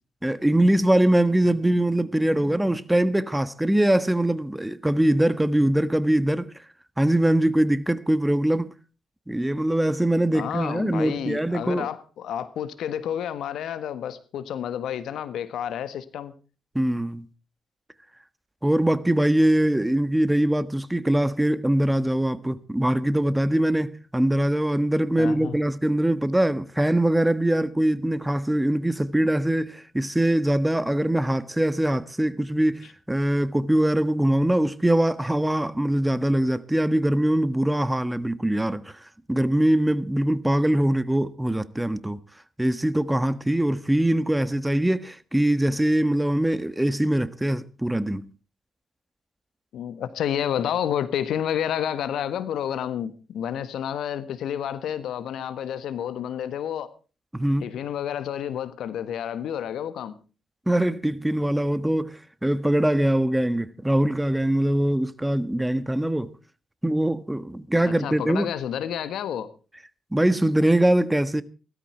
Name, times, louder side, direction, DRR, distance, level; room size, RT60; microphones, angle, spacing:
voice 1, 0.2-6.5 7.0-8.7 9.3-11.9 16.7-17.3 18.6-39.0 39.3-42.2 42.6-48.2 57.3-57.7 60.7-66.3 66.8-68.5 70.1-71.4, right 1 dB, 10° right, 1.3 m, -22 dB
voice 2, 10.3-16.3 25.2-25.6 49.7-56.9 57.6-60.1 67.8-69.5, left 9 dB, 70° left, 1.4 m, -30 dB
16.5 x 13.5 x 4.5 m
hypercardioid pair, 45°, 0 cm